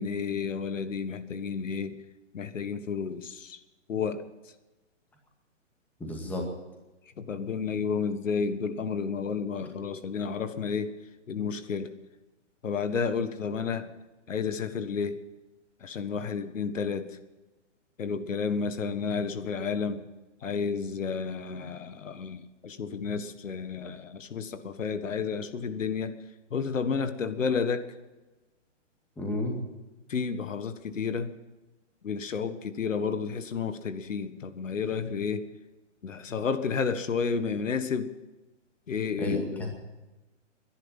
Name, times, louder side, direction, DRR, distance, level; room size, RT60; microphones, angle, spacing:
voice 1, 0.0-2.0 2.3-3.6 3.9-4.3 7.2-10.9 11.3-11.9 12.6-13.9 14.3-15.2 15.8-17.1 18.0-20.0 20.4-26.1 26.5-27.9 30.1-31.3 32.0-35.4 36.0-38.1 38.9-39.7, left 5 dB, 80° left, 11 dB, 1.6 m, -31 dB
voice 2, 6.0-6.5 29.2-29.5 39.2-39.7, left 2 dB, 5° left, 0 dB, 2.1 m, -31 dB
23.0 x 10.5 x 5.6 m, 1.1 s
hypercardioid pair, 165°, 38 cm